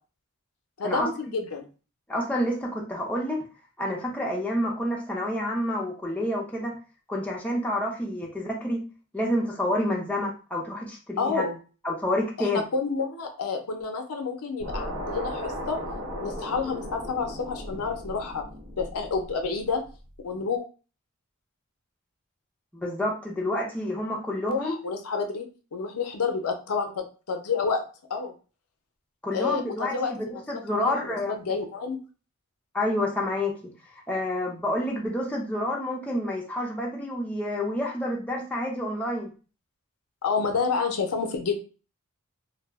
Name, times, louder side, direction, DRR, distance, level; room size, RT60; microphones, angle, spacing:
voice 1, 0.8-1.7 11.2-11.6 12.4-15.8 16.2-18.4 18.8-19.8 20.2-20.6 24.5-25.4 25.7-27.8 28.1-28.3 29.3-30.4 30.7-32.0 40.2-41.6, left 4 dB, 70° left, 4 dB, 0.5 m, -29 dB
voice 2, 2.1-3.4 3.8-6.7 7.1-8.8 9.1-11.4 11.8-12.6 22.7-24.8 29.2-31.4 32.7-33.5 34.1-39.3, left 1 dB, 5° left, -2 dB, 0.5 m, -28 dB
sound 1, 14.6-19.9, equal, 75° right, 0.9 m, -36 dB
2.3 x 2.0 x 3.4 m, 0.35 s
head